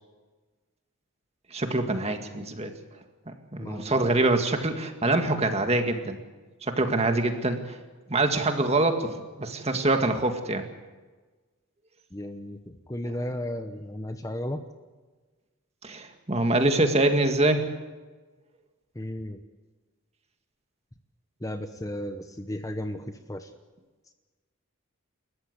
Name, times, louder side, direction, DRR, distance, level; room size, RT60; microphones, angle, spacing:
voice 1, 1.5-2.7 3.3-6.2 6.6-7.8 8.1-10.7 15.8-17.7, right 2 dB, 30° right, 6 dB, 2.0 m, -25 dB
voice 2, 3.6-4.0 12.1-14.6 18.9-19.4 21.4-23.5, left 1 dB, 15° left, 8 dB, 0.9 m, -34 dB
29.0 x 14.5 x 8.1 m, 1.3 s
head